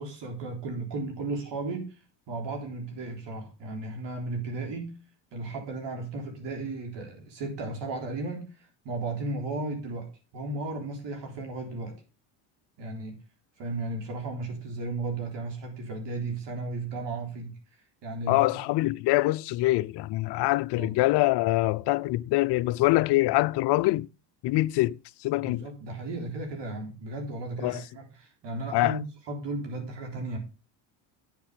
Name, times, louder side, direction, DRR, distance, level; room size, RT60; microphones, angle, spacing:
voice 1, 0.0-1.9 2.3-5.0 5.3-12.0 12.8-13.2 13.6-17.6 18.0-18.6 20.4-20.5 20.7-20.9 25.4-29.0 29.3-30.4, right 2 dB, 55° right, 3.8 m, -35 dB
voice 2, 18.3-24.1 24.4-25.0 25.2-25.7 27.6-27.8 28.7-29.0, left 19 dB, 55° left, 0.6 m, -24 dB
8.9 x 8.6 x 5.1 m
supercardioid pair, 85°, 50 cm